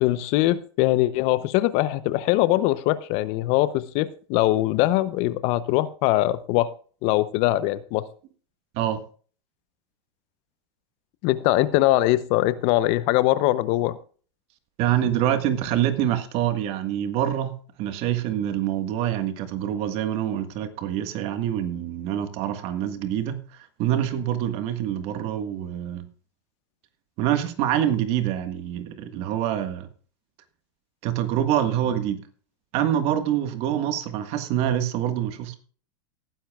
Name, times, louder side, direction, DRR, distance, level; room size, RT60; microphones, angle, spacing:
voice 1, 0.0-6.7 7.0-8.0 11.2-14.0, left 16 dB, 50° left, 15 dB, 0.8 m, -22 dB
voice 2, 14.8-17.5 17.8-23.4 23.8-26.1 27.2-29.9 31.0-32.2 32.7-35.6, right 11 dB, 50° right, 9 dB, 1.6 m, -25 dB
18.5 x 10.0 x 2.4 m, 0.41 s
hypercardioid pair, 110°, 13 cm